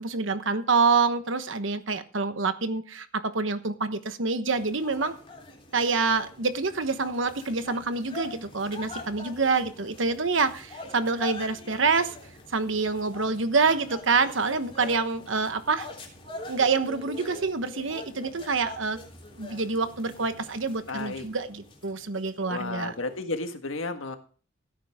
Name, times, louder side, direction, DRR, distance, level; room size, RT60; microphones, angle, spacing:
voice 1, 0.0-5.1 5.7-12.2 12.5-15.9 16.5-19.0 19.4-22.9, right 4 dB, 70° right, 10 dB, 1.2 m, -26 dB
sound 1, 4.5-23.3, left 2 dB, 30° left, 3.5 m, -44 dB
voice 2, 20.9-21.2 22.4-24.2, left 3 dB, 85° left, 7 dB, 1.6 m, -33 dB
16.5 x 9.4 x 3.6 m, 0.40 s
head